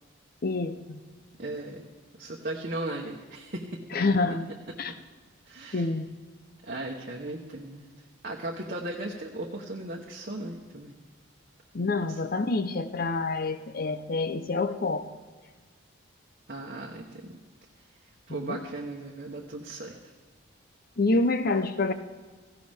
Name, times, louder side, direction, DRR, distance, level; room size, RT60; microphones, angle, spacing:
voice 1, 0.4-1.0 3.9-4.5 4.8-4.9 5.7-6.1 11.7-15.1 18.3-18.7 21.0-21.9, left 3 dB, 45° left, 11 dB, 0.7 m, -27 dB
voice 2, 1.4-1.8 2.2-3.8 4.9-5.0 5.5-5.9 6.6-7.9 8.2-10.9 16.5-17.1 18.3-20.0, right 2 dB, 45° right, -1 dB, 1.1 m, -36 dB
17.0 x 15.5 x 3.5 m, 1.4 s
head